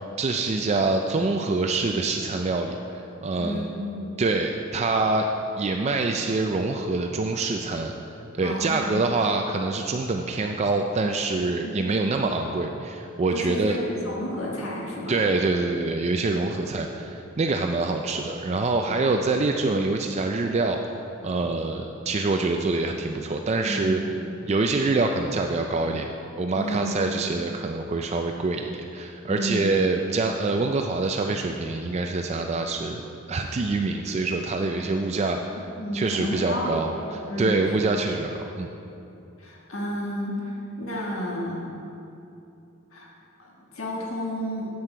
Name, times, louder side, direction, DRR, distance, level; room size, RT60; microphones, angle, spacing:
voice 1, 0.2-2.8 3.2-3.7 4.2-5.3 5.6-7.9 8.3-13.8 15.1-20.8 21.2-24.0 24.5-26.1 26.4-33.0 33.3-35.6 35.9-36.9 37.4-38.7, right 3 dB, 30° right, 4 dB, 0.4 m, -25 dB
voice 2, 3.4-4.2 8.4-9.0 11.5-11.8 13.3-15.2 16.5-16.7 23.6-24.2 26.5-27.2 29.3-29.7 35.5-37.7 39.4-41.7 42.9-43.1 43.4-44.7, equal, 80° left, -3 dB, 1.5 m, -31 dB
9.5 x 8.3 x 4.5 m, 2.8 s
head